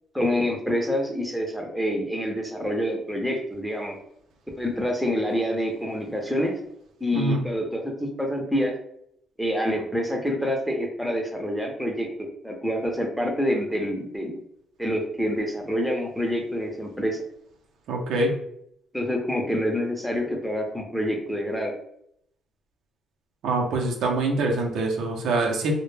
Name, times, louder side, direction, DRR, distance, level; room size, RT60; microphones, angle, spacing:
voice 1, 0.1-3.9 4.6-6.5 7.0-8.7 9.4-12.1 12.4-14.4 14.8-17.2 18.9-21.7, equal, ahead, 0 dB, 0.6 m, -27 dB
voice 2, 17.9-18.3 23.4-25.8, right 2 dB, 80° right, 0 dB, 0.6 m, -24 dB
2.1 x 2.0 x 3.1 m, 0.72 s
cardioid pair, 90°, 0 cm